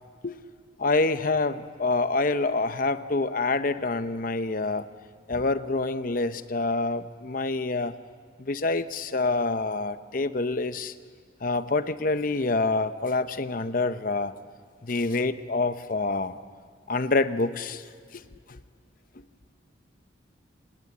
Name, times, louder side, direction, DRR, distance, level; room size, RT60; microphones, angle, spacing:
voice 1, 0.8-4.8 5.3-7.9 8.4-10.9 11.4-14.3 14.8-16.4 16.9-17.8 18.1-18.2 18.5-18.6, left 3 dB, 45° left, 0.8 m, -26 dB
26.5 x 19.5 x 8.4 m
head